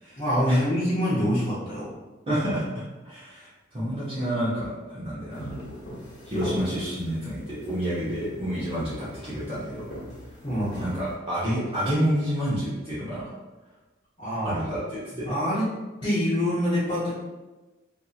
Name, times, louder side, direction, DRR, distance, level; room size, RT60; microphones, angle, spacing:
voice 1, 0.2-1.9 10.4-10.9 14.2-14.6 15.2-15.7 16.0-17.1, equal, 25° left, -11 dB, 0.7 m, -25 dB
voice 2, 2.3-5.5 6.2-9.9 10.8-13.2 14.4-15.3, equal, 30° right, -10 dB, 0.7 m, -29 dB
sound 1, 5.3-11.1, left 1 dB, 65° left, 1.0 m, -39 dB
2.7 x 2.5 x 2.4 m, 1.1 s
head